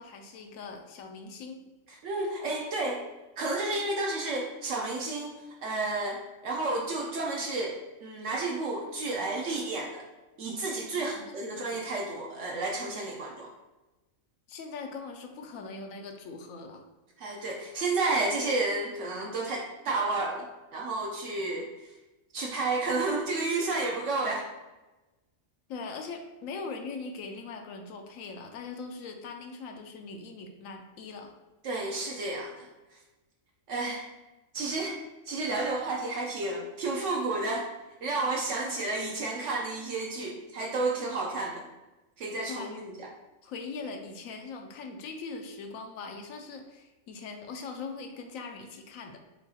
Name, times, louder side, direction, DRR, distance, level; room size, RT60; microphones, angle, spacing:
voice 1, 0.0-1.6 11.0-11.8 14.5-16.8 25.7-31.4 42.5-42.8 43.4-49.2, left 4 dB, 80° left, 4 dB, 1.0 m, -41 dB
voice 2, 1.9-3.0 3.4-5.3 5.6-10.0 10.4-13.5 17.2-21.7 22.3-24.5 31.6-32.7 33.7-34.0 34.5-35.0 35.3-37.7 38.0-41.7 42.2-43.1, right 2 dB, 70° right, -1 dB, 0.9 m, -31 dB
6.4 x 2.3 x 2.7 m, 1.1 s
omnidirectional pair, 1.4 m